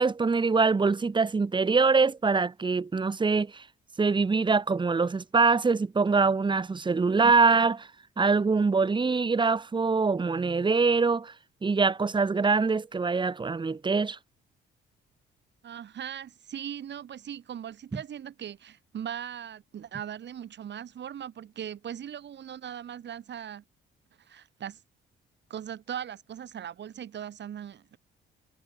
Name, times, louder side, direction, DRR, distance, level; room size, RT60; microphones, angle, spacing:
voice 1, 0.0-3.6 4.0-7.9 8.2-11.3 11.6-14.2, right 4 dB, 25° right, 1.3 m, -24 dB
voice 2, 15.6-23.6 24.2-24.8 25.5-28.0, right 9 dB, 60° right, 7.5 m, -39 dB
cardioid pair, 90°, 20 cm